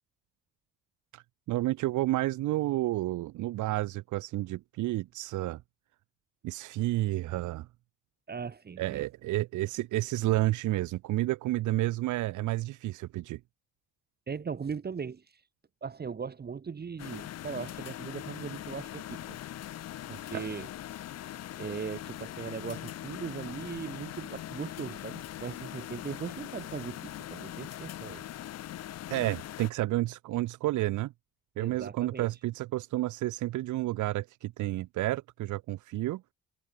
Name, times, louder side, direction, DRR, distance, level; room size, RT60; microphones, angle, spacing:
voice 1, 1.1-5.6 6.4-7.7 8.8-13.4 20.3-20.4 29.1-31.1 31.6-36.2, right 16 dB, 75° right, 0.7 m, -30 dB
voice 2, 8.3-9.0 14.3-15.4 15.8-19.4 20.1-20.7 21.6-28.2 31.6-32.3, right 6 dB, 35° right, 1.2 m, -39 dB
sound 1, 17.0-29.7, left 12 dB, 55° left, 0.6 m, -41 dB
cardioid pair, 90°, 30 cm